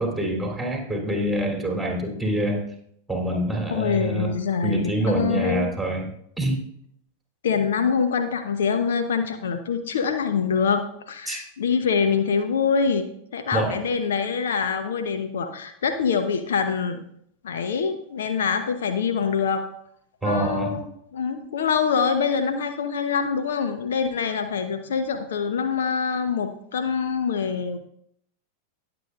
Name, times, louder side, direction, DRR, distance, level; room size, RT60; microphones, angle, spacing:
voice 1, 0.0-2.6 3.1-4.3 4.6-6.1 6.4-6.6 11.3-11.4 13.5-13.8 20.2-20.8, right 1 dB, ahead, 0 dB, 3.0 m, -26 dB
voice 2, 3.7-5.7 7.4-17.0 17.4-19.7 20.2-20.8 21.1-27.8, left 6 dB, 60° left, 8 dB, 0.8 m, -25 dB
19.5 x 7.8 x 2.4 m, 0.71 s
figure-of-eight pair, 90°, 0 cm